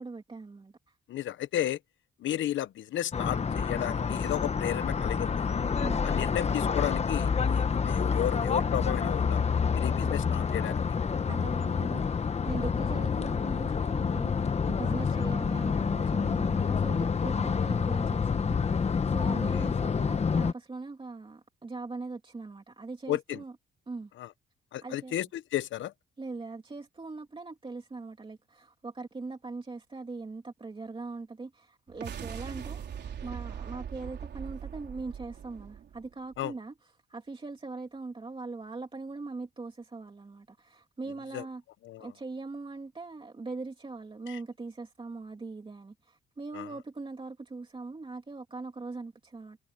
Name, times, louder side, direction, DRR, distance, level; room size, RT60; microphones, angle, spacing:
voice 1, 0.0-0.9 5.8-6.1 10.0-10.2 11.2-12.2 12.4-14.3 14.7-23.5 23.9-24.1 24.8-25.2 26.2-41.6 42.0-49.6, right 3 dB, 25° right, 2.6 m, -41 dB
voice 2, 1.1-1.8 2.2-5.5 6.0-9.4 9.7-10.8 19.5-19.6 23.1-23.4 24.2-24.3 24.7-25.9 36.4-36.5 41.3-41.4 41.8-42.1 44.3-44.4 46.5-46.7, left 12 dB, 70° left, 1.0 m, -33 dB
sound 1, 3.1-20.5, left 6 dB, 35° left, 1.1 m, -28 dB
sound 2, 31.9-36.4, right 8 dB, 60° right, 3.9 m, -40 dB
cardioid pair, 90°, 20 cm